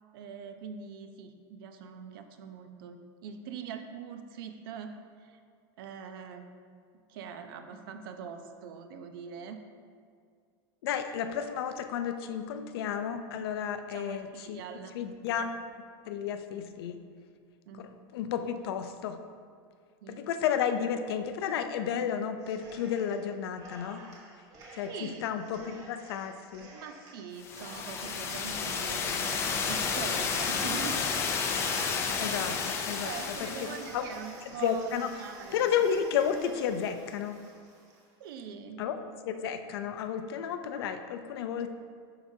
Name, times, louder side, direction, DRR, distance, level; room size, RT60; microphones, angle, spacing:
voice 1, 0.1-5.4 5.8-6.4 7.1-9.6 13.9-15.0 17.7-17.9 20.0-20.2 24.9-25.2 26.7-31.1 32.4-32.6 33.0-35.7 38.2-38.8, right 6 dB, 65° right, 7 dB, 0.7 m, -43 dB
voice 2, 10.8-14.6 14.9-15.5 16.1-17.0 17.8-19.2 20.1-24.0 24.8-26.7 32.2-32.5 32.9-33.1 33.9-34.0 34.6-35.1 35.5-37.4 38.8-39.0 39.3-41.7, left 8 dB, 85° left, 8 dB, 0.6 m, -32 dB
Cheering, 22.4-23.3 23.6-38.0, right 1 dB, 25° right, 1.2 m, -48 dB
sound 1, 27.4-33.9, left 5 dB, 20° left, 0.4 m, -31 dB
11.5 x 4.8 x 2.8 m, 2.1 s
supercardioid pair, 170°, 13 cm